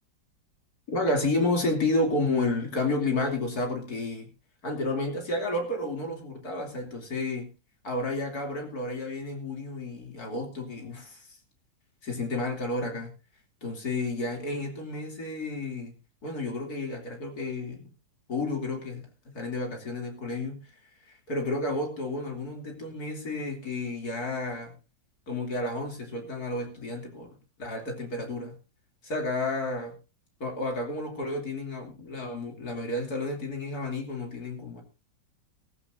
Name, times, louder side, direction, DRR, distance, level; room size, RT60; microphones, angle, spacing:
voice 1, 0.9-4.3 4.6-7.5 7.8-11.4 12.0-13.1 13.6-15.9 16.2-17.9 18.3-20.6 21.1-24.7 25.3-28.5 29.0-29.9 30.4-34.8, left 2 dB, 55° left, 2 dB, 3.4 m, -31 dB
16.5 x 15.5 x 2.6 m, 0.29 s
omnidirectional pair, 1.9 m